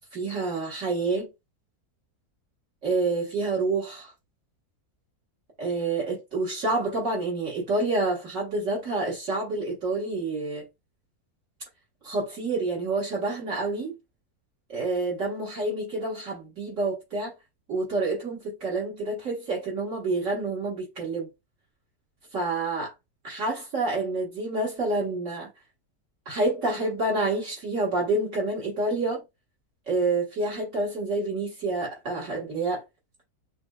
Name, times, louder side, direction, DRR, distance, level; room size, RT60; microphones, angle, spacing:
voice 1, 0.1-1.3 2.8-4.1 5.6-10.6 12.0-13.9 14.7-17.3 17.7-21.3 22.3-22.9 23.2-25.5 26.3-29.2 29.9-32.8, right 2 dB, 55° right, 1.7 m, -28 dB
5.8 x 2.1 x 2.3 m
omnidirectional pair, 1.7 m